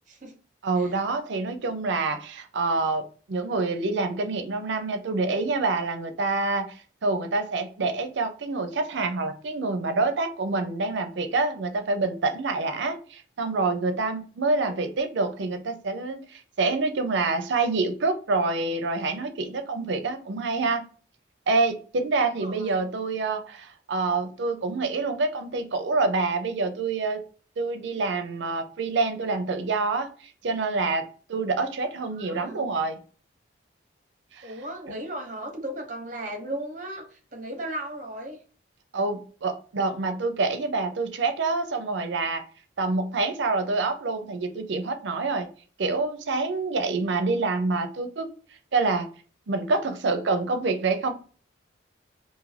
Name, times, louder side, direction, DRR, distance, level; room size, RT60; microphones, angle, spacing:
voice 1, 0.6-6.6 7.0-20.8 21.5-27.2 27.6-33.0 34.3-34.5 38.9-42.4 42.8-45.5 45.8-48.3 48.7-49.1 49.5-51.1, right 3 dB, 70° right, 7 dB, 0.5 m, -27 dB
voice 2, 22.4-22.8 32.1-32.6 34.4-38.4, right 1 dB, 40° right, 3 dB, 0.7 m, -36 dB
2.6 x 2.5 x 3.2 m, 0.39 s
head